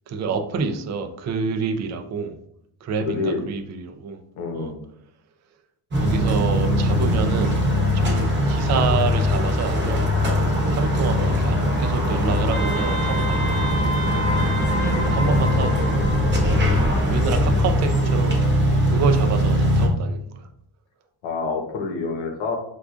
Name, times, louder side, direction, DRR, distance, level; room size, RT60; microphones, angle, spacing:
voice 1, 0.1-2.4 2.8-4.2 4.5-4.7 5.9-7.6 7.9-10.1 10.7-14.0 14.7-16.1 16.4-16.6 17.1-18.4 18.9-20.5, right 5 dB, 40° right, 6 dB, 0.4 m, -28 dB
voice 2, 3.0-3.4 4.4-4.8 21.2-22.6, left 4 dB, 85° left, 3 dB, 0.9 m, -27 dB
sound 1, 5.9-19.9, left 1 dB, 25° right, 0.9 m, -21 dB
Wind instrument woodwind instrument, 12.5-16.7, right 2 dB, 25° left, 0.9 m, -30 dB
4.7 x 2.4 x 2.4 m, 0.72 s
cardioid pair, 120°, 46 cm